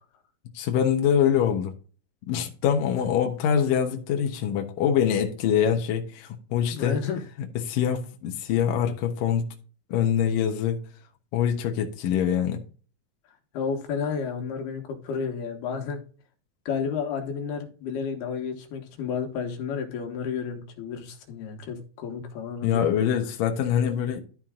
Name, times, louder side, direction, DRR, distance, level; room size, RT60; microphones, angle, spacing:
voice 1, 0.5-1.7 2.3-7.0 7.7-9.5 9.9-10.8 11.3-12.6 22.6-24.2, left 8 dB, 70° left, 2.7 m, -24 dB
voice 2, 6.7-7.2 13.5-16.0 16.7-22.9, left 6 dB, 85° left, 3.6 m, -31 dB
12.5 x 4.5 x 3.7 m
omnidirectional pair, 4.4 m